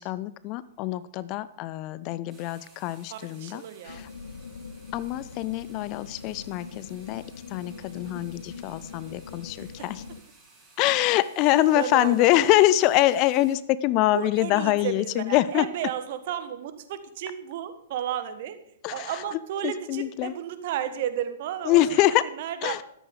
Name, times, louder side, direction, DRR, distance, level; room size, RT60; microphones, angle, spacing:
voice 1, 0.0-4.1 4.9-7.2 7.5-10.0 10.8-15.7 18.8-19.2 19.6-20.3 21.7-22.2 22.6-22.8, left 15 dB, 35° left, 17 dB, 0.5 m, -24 dB
sound 1, 2.3-13.5, right 3 dB, 15° right, 5.9 m, -56 dB
voice 2, 3.1-4.0 9.6-9.7 11.7-12.4 14.1-18.6 18.9-22.8, right 10 dB, 50° right, 10 dB, 1.5 m, -33 dB
sound 2, 3.9-10.2, left 5 dB, 70° left, 0.8 m, -42 dB
13.5 x 13.0 x 3.9 m, 0.69 s
figure-of-eight pair, 105°, 0 cm